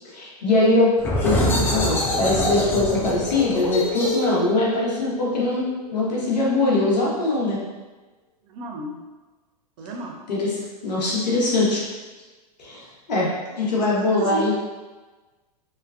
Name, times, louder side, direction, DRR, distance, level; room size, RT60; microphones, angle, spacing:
voice 1, 0.1-0.9 1.2-5.6 5.9-7.6 10.3-10.5 10.8-11.8 12.6-12.8 13.1-13.3 13.6-14.5, left 2 dB, 90° left, -5 dB, 1.0 m, -21 dB
sound 1, 1.0-6.4, left 1 dB, 10° left, 0.4 m, -25 dB
voice 2, 8.5-9.0 9.8-10.2 13.7-13.8 14.2-14.5, right 1 dB, 55° right, 1 dB, 0.6 m, -32 dB
3.1 x 2.2 x 2.4 m, 1.2 s
hypercardioid pair, 120°, 21 cm